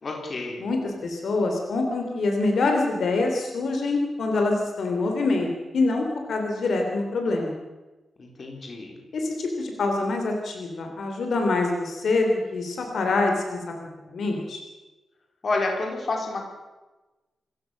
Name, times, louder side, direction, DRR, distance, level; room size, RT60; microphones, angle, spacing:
voice 1, 0.0-0.7 8.2-9.0 15.4-16.5, left 2 dB, 35° left, 1 dB, 4.2 m, -29 dB
voice 2, 0.6-7.6 9.1-13.6 14.1-14.6, left 3 dB, 60° left, 2 dB, 3.7 m, -25 dB
27.5 x 15.5 x 6.7 m, 1.1 s
wide cardioid pair, 175°, 0 cm